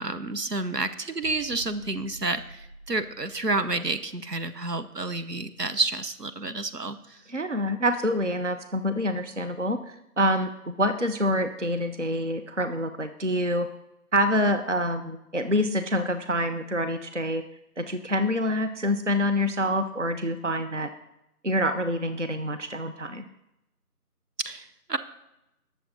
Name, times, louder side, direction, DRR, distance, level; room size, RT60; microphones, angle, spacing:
voice 1, 0.0-7.2 24.4-25.0, right 3 dB, 80° right, 11 dB, 1.1 m, -30 dB
sound 1, 1.2-6.9 7.2-7.4, right 1 dB, 30° right, 3.4 m, -50 dB
voice 2, 7.3-13.7 14.1-17.4 17.8-20.9 21.4-23.2, equal, 50° right, 9 dB, 0.7 m, -26 dB
19.0 x 7.0 x 4.2 m, 0.88 s
figure-of-eight pair, 175°, 47 cm